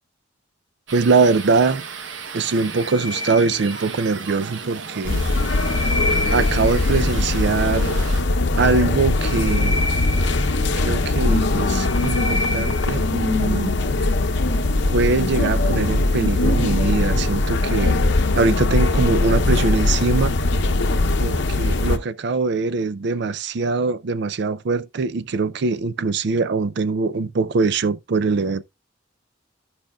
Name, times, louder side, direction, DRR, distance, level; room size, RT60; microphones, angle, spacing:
voice 1, 0.9-1.9 2.3-5.2 6.3-8.0 8.6-9.9 10.8-13.8 14.9-18.0 18.4-20.3 21.2-28.6, right 4 dB, 60° right, 0.5 m, -22 dB
sound 1, 0.9-8.2, right 5 dB, 80° right, 0.9 m, -35 dB
sound 2, 2.7-4.2 5.1-7.0 9.0-11.1 11.5-13.1, left 1 dB, 30° left, 0.7 m, -30 dB
sound 3, 5.0-22.0, left 2 dB, 65° left, 0.7 m, -20 dB
15.0 x 5.1 x 2.3 m
head